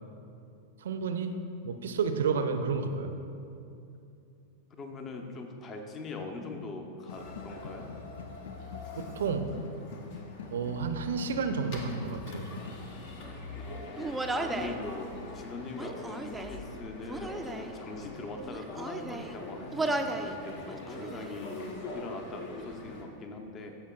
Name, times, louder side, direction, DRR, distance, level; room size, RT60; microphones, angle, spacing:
voice 1, 0.8-1.4 1.6-3.1 9.0-9.5 10.5-12.6, right 5 dB, 65° right, 8 dB, 0.5 m, -31 dB
voice 2, 4.8-8.0 13.5-23.8, left 3 dB, 25° left, 4 dB, 0.8 m, -42 dB
sound 1, 7.0-15.9, left 6 dB, 65° left, 0.5 m, -47 dB
sound 2, 7.1-23.0, left 2 dB, 50° left, 1.0 m, -44 dB
Human voice, 14.0-14.8 15.7-16.6 17.1-17.7 18.4-19.3 19.7-20.3 20.7-21.4, right 2 dB, 10° right, 0.4 m, -35 dB
14.5 x 5.7 x 2.4 m, 2.7 s
figure-of-eight pair, 90°, 0 cm